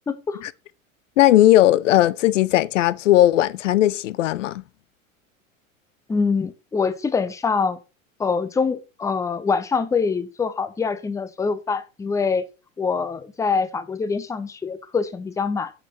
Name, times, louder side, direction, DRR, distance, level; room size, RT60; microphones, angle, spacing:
voice 1, 0.1-0.4 6.1-7.8 8.2-12.5 12.8-15.7, left 5 dB, 10° left, 0.6 m, -24 dB
voice 2, 1.2-4.6, left 14 dB, 65° left, 0.5 m, -17 dB
8.1 x 6.5 x 3.0 m
figure-of-eight pair, 85°, 41 cm